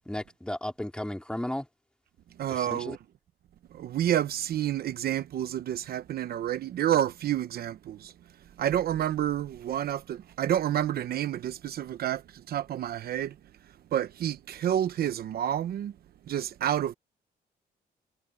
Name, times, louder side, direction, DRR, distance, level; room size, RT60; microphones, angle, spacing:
voice 1, 0.0-1.7 2.5-3.0, left 1 dB, 5° left, 3.0 m, -34 dB
voice 2, 2.4-3.0 3.7-8.1 8.6-13.4 13.6-16.0 16.3-16.9, right 11 dB, 70° right, 0.9 m, -29 dB
cardioid pair, 105°, 17 cm